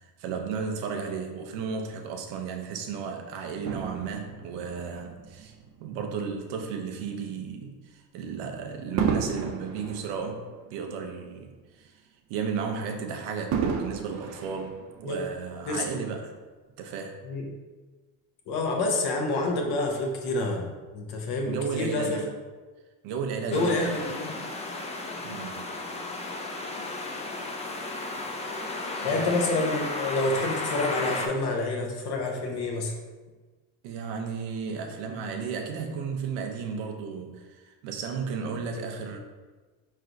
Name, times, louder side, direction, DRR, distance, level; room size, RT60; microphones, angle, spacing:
voice 1, 0.0-5.5 5.8-10.4 10.7-12.0 12.3-16.3 16.8-17.2 21.4-22.3 23.0-23.9 25.2-25.7 29.0-29.3 33.8-39.2, right 5 dB, 85° right, 3 dB, 0.7 m, -34 dB
Fireworks, 3.6-6.2 6.9-7.1 9.0-11.5 11.9-12.0 13.5-15.4 16.1-16.2, right 6 dB, 40° right, 0.5 m, -33 dB
voice 2, 18.5-22.2 23.5-24.3 29.0-32.9, left 2 dB, 65° left, 2 dB, 0.9 m, -28 dB
sound 1, 23.5-31.3, left 2 dB, 15° left, 0.5 m, -34 dB
4.5 x 3.3 x 2.6 m, 1.3 s
supercardioid pair, 90°, 42 cm